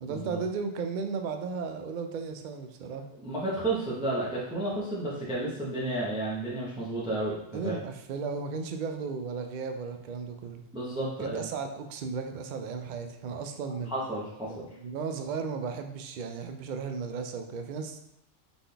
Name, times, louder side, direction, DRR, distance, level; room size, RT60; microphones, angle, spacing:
voice 1, 0.0-3.1 7.5-10.6 11.2-13.9 14.6-18.0, right 5 dB, 60° right, 5 dB, 0.5 m, -35 dB
voice 2, 3.2-7.8 10.7-11.4 13.9-14.7, right 2 dB, 5° right, -7 dB, 0.9 m, -32 dB
4.0 x 3.8 x 3.3 m, 0.80 s
omnidirectional pair, 1.2 m